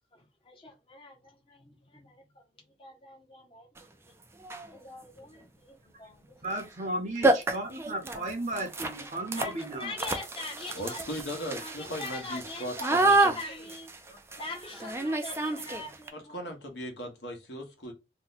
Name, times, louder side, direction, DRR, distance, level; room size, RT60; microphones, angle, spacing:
voice 1, 0.1-4.2 4.7-6.6 7.2-7.4 9.3-16.5, left 2 dB, 30° left, 0.8 m, -43 dB
sound 1, 3.8-3.9 4.4-4.8 6.5-6.6 6.9-7.0 7.2-16.1, right 2 dB, 15° right, 0.3 m, -29 dB
voice 2, 6.4-9.9, right 1 dB, 40° right, 0.7 m, -35 dB
voice 3, 10.7-13.4 16.1-17.9, equal, 80° left, 1.1 m, -38 dB
2.8 x 2.1 x 3.9 m
head